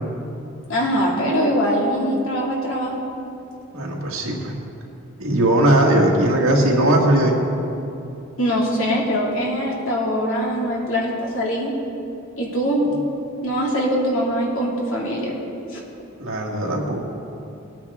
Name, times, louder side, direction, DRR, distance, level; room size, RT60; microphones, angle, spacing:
voice 1, 0.7-3.0 8.4-11.8 12.4-12.8 13.4-15.3 15.7-15.8, equal, 70° left, -3 dB, 2.5 m, -22 dB
voice 2, 3.7-4.6 5.2-7.4 16.2-17.0, right 1 dB, 75° right, -1 dB, 1.9 m, -18 dB
19.0 x 8.7 x 3.6 m, 2.7 s
head